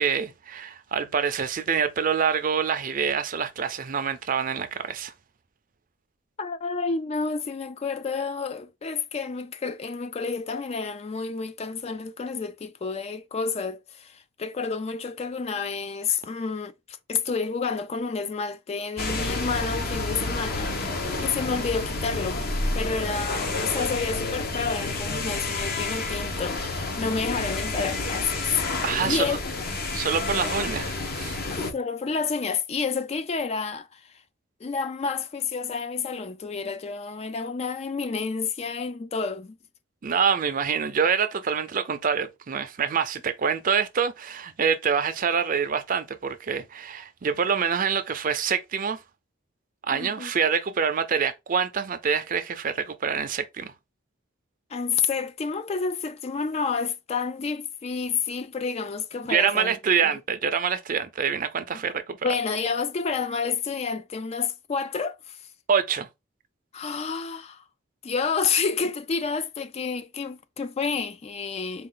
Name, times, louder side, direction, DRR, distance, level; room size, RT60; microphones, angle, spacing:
voice 1, 0.0-5.1 28.8-29.4 29.9-31.4 40.0-49.0 49.8-53.7 59.3-62.2 65.7-66.1, right 6 dB, 45° right, 0.5 m, -26 dB
voice 2, 6.4-22.5 22.7-28.5 29.0-29.7 31.5-34.1 34.6-39.6 49.9-50.3 54.7-59.8 60.0-60.2 62.2-65.4 66.7-67.6 68.0-71.9, left 5 dB, 30° left, 0.3 m, -30 dB
sound 1, 19.0-31.7, left 2 dB, 50° left, 0.9 m, -29 dB
4.2 x 2.4 x 3.7 m
head